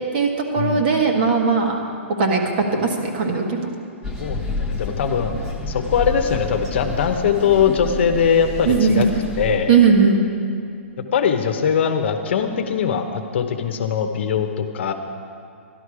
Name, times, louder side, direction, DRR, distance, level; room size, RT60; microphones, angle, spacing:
voice 1, 0.1-1.8 2.2-2.4 2.7-3.7 8.6-9.2 9.7-10.3, right 5 dB, 45° right, 2 dB, 1.6 m, -18 dB
sound 1, 4.0-9.6, left 2 dB, 5° right, 1.1 m, -29 dB
voice 2, 4.2-5.3 5.7-9.1 9.4-9.7 11.1-14.9, left 7 dB, 55° left, 6 dB, 0.9 m, -21 dB
12.0 x 11.5 x 4.9 m, 2.3 s
hypercardioid pair, 165°, 7 cm